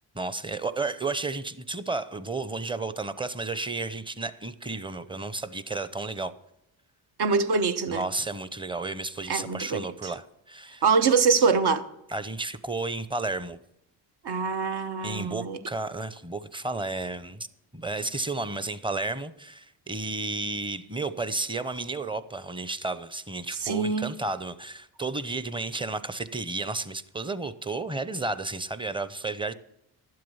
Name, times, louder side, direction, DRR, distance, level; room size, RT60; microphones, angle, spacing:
voice 1, 0.1-6.3 7.9-10.8 12.1-13.6 15.0-17.5 17.7-29.5, right 3 dB, 10° right, 0.7 m, -32 dB
voice 2, 7.2-8.0 9.3-10.1 10.8-11.9 14.2-15.6 23.6-24.1, right 5 dB, 60° right, 1.0 m, -24 dB
11.5 x 7.7 x 5.6 m
supercardioid pair, 55°, 44 cm